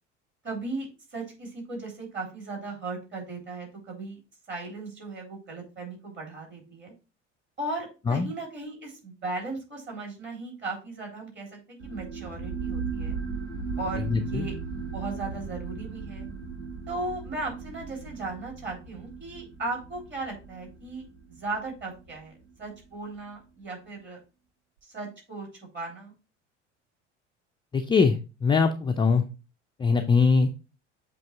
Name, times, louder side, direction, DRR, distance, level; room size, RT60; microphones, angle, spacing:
voice 1, 0.4-4.2 4.5-6.9 7.6-13.2 13.8-16.3 16.9-22.3 22.6-24.2 24.8-25.5 25.7-26.1, right 2 dB, 30° right, 0 dB, 3.5 m, -37 dB
sound 1, 11.8-22.9, right 5 dB, 85° right, 2.0 m, -37 dB
voice 2, 14.1-14.5 27.7-28.2 28.4-29.2 29.8-30.5, left 5 dB, 15° left, 5 dB, 0.4 m, -22 dB
7.6 x 3.0 x 4.4 m, 0.31 s
figure-of-eight pair, 65°, 36 cm